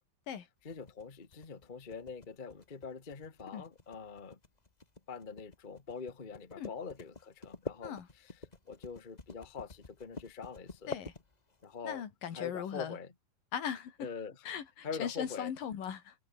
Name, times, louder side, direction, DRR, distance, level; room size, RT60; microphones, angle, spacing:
voice 1, 0.6-4.4 5.1-7.9 8.7-10.9 11.6-12.0 12.3-13.1 14.0-14.3 14.8-15.5, left 5 dB, 25° left, 1.2 m, -43 dB
sound 1, 0.7-11.7, left 3 dB, 55° left, 0.4 m, -47 dB
voice 2, 11.8-13.0 13.5-14.1 14.5-16.2, left 8 dB, 80° left, 4.2 m, -39 dB
omnidirectional pair, 3.9 m